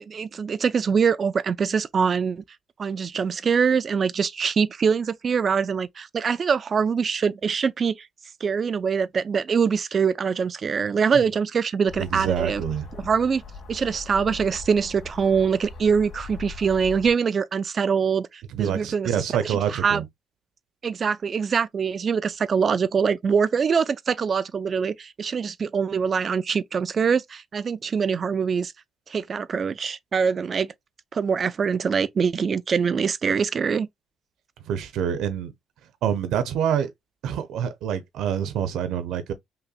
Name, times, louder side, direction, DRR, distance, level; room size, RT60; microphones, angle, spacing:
voice 1, 0.1-2.4 2.8-8.1 8.4-12.6 13.0-13.4 13.7-19.1 19.4-20.0 20.8-28.7 29.1-30.7 31.1-33.9, right 6 dB, 35° right, 0.3 m, -24 dB
sound 1, 11.9-17.1, left 4 dB, 50° left, 1.9 m, -40 dB
voice 2, 12.0-12.9 18.5-20.0 34.7-35.5 36.0-36.9 37.2-39.3, right 9 dB, 75° right, 0.8 m, -26 dB
5.7 x 2.2 x 2.4 m
cardioid pair, 145°, 0 cm